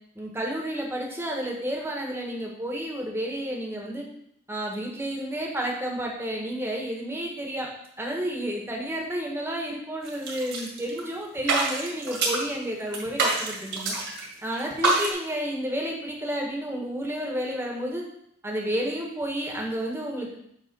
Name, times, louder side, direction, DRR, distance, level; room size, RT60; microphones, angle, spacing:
voice 1, 0.1-4.0 4.5-7.7 8.0-13.9 14.4-18.0 18.4-20.4, equal, 15° right, -1 dB, 1.3 m, -31 dB
sound 1, 10.0-11.1 11.4-12.5 12.9-14.2 14.5-15.1, right 3 dB, 60° right, 2.0 m, -26 dB
7.7 x 3.7 x 5.3 m, 0.71 s
head